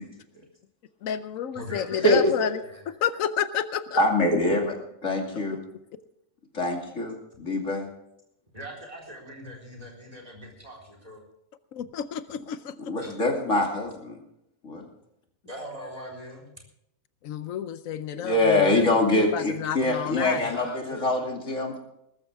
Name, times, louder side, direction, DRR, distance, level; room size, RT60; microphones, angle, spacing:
voice 1, 1.0-4.0 5.5-5.6 11.7-12.9 17.2-18.8 19.1-20.4, left 9 dB, 90° left, 13 dB, 1.1 m, -30 dB
voice 2, 1.5-2.8 8.5-11.2 13.0-13.3 15.5-16.5 20.2-21.1, equal, 30° right, 1 dB, 4.2 m, -41 dB
voice 3, 4.0-4.7 5.0-5.6 6.5-7.9 12.9-14.2 14.6-14.8 18.2-21.8, left 1 dB, 70° left, 1 dB, 2.9 m, -24 dB
20.0 x 13.5 x 3.5 m, 0.81 s
omnidirectional pair, 1.4 m